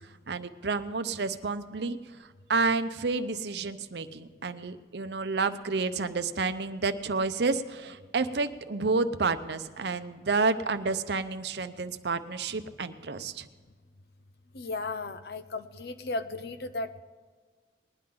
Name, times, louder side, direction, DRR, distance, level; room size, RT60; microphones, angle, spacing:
voice 1, 0.3-2.0 2.5-13.4, right 4 dB, 70° right, 10 dB, 0.7 m, -30 dB
voice 2, 14.5-17.0, left 2 dB, 60° left, 10 dB, 0.7 m, -35 dB
20.0 x 10.5 x 3.8 m, 1.5 s
head